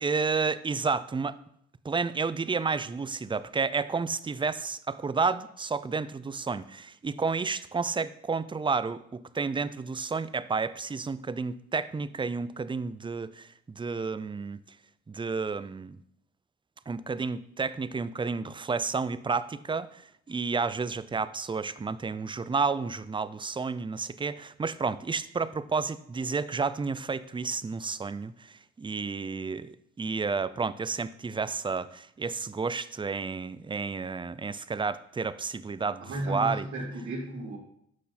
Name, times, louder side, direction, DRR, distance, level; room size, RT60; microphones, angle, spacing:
voice 1, 0.0-1.4 1.8-14.6 15.1-16.0 16.9-36.7, right 4 dB, 15° right, 15 dB, 0.5 m, -31 dB
voice 2, 36.0-37.6, right 1 dB, 75° right, -4 dB, 2.8 m, -34 dB
11.0 x 6.4 x 4.2 m, 0.71 s
cardioid pair, 90°, 30 cm